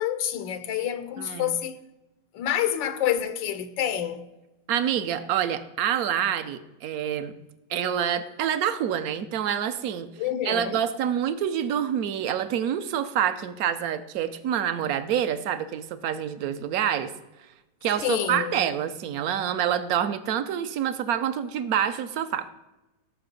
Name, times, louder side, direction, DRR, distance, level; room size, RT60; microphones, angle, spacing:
voice 1, 0.0-1.8 2.3-4.3 10.2-10.8 18.0-18.7, left 10 dB, 90° left, 1.5 m, -28 dB
voice 2, 1.2-1.6 4.7-7.3 7.7-10.1 10.4-17.1 17.8-22.5, right 9 dB, 60° right, 1.1 m, -27 dB
18.5 x 6.2 x 5.2 m
omnidirectional pair, 2.0 m